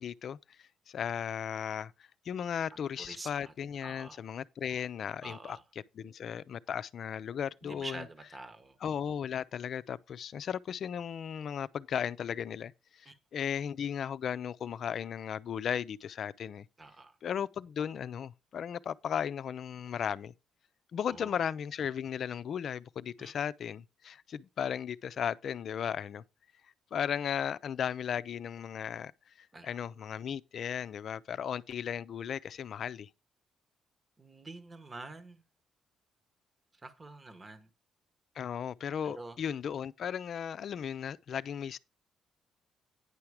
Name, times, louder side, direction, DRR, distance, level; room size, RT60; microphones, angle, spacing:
voice 1, 0.0-1.9 2.2-5.6 5.9-8.0 8.8-16.7 17.2-20.3 20.9-26.2 26.9-29.1 29.4-33.1 38.4-41.8, left 8 dB, 60° left, 0.5 m, -36 dB
voice 2, 3.0-3.5 3.8-4.2 5.2-5.6 7.6-8.7 13.1-13.2 16.8-17.2 21.0-21.4 23.2-23.3 29.5-29.7 34.2-35.4 36.8-37.7 39.0-39.4, right 3 dB, 25° right, 1.1 m, -47 dB
9.8 x 5.8 x 4.8 m
cardioid pair, 90°, 0 cm